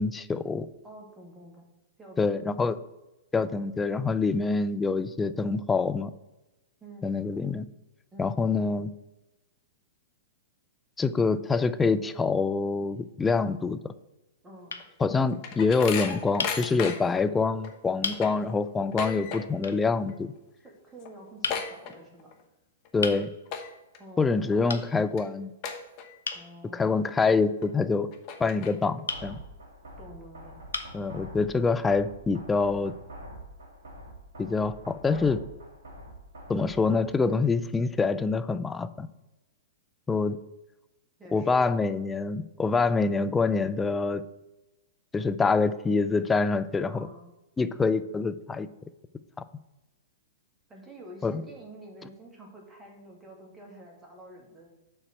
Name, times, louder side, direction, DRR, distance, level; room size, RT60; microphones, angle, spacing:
voice 1, 0.0-0.7 2.2-2.8 3.3-6.1 7.0-7.7 8.2-8.9 11.0-13.9 15.0-20.3 22.9-23.3 24.2-25.5 26.7-28.1 28.4-29.4 30.9-32.9 34.4-35.4 36.5-39.1 40.1-40.4 41.3-44.2 45.1-47.1 47.6-48.7 51.2-51.4, left 4 dB, 15° left, 12 dB, 0.4 m, -26 dB
voice 2, 0.8-1.7 2.0-2.5 6.8-7.1 8.1-8.4 14.4-14.9 20.6-22.3 24.0-24.5 26.3-26.9 30.0-30.6 41.2-41.6 46.8-47.4 50.7-54.8, right 1 dB, 15° right, -1 dB, 2.1 m, -48 dB
sound 1, 12.9-13.5 14.3-14.4 14.7-14.9 16.4-16.6 17.4-17.5 18.0-18.2 19.6-19.8 21.4-21.6 23.0-23.2 24.7-24.9 26.2-26.5 29.1-29.3 30.1-30.2 30.7-31.0, left 4 dB, 75° left, 0.8 m, -33 dB
sound 2, 14.8-17.2 17.6-17.7 18.0-19.7 20.0-20.4 20.7-20.8 21.0-22.4 22.8-23.1 23.5-24.0 24.5-24.6 25.2-25.3 25.6-26.4 26.8-26.9 27.6-27.7 28.1-29.0, left 6 dB, 40° left, 1.1 m, -35 dB
sound 3, 29.1-37.1, right 1 dB, 65° right, 2.4 m, -45 dB
6.7 x 4.2 x 6.4 m, 1.0 s
hypercardioid pair, 110°, 0 cm